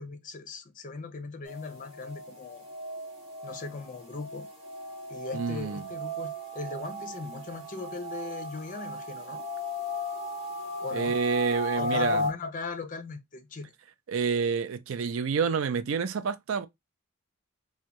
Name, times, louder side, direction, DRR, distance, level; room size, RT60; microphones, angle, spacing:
voice 1, 0.0-2.7 3.4-4.5 5.1-9.4 10.8-11.2 11.7-13.7, left 3 dB, 40° left, 0.6 m, -39 dB
Glass Rising Build Up, 1.5-12.3, left 1 dB, 30° right, 1.3 m, -35 dB
voice 2, 5.3-5.8 10.9-12.3 14.1-16.7, right 6 dB, 75° right, 0.4 m, -28 dB
3.5 x 2.2 x 2.8 m
head